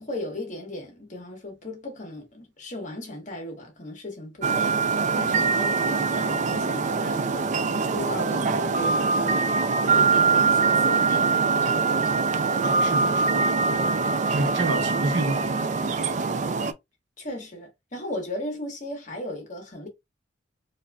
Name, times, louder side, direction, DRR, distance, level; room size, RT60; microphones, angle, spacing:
voice 1, 0.0-4.8 5.1-7.2 7.7-12.4 17.2-19.9, left 1 dB, 40° left, 1.3 m, -36 dB
sound 1, 4.4-16.7, right 4 dB, 40° right, 0.4 m, -23 dB
voice 2, 12.6-13.8 14.3-16.0, right 2 dB, 75° right, 0.9 m, -30 dB
4.0 x 2.5 x 2.3 m
head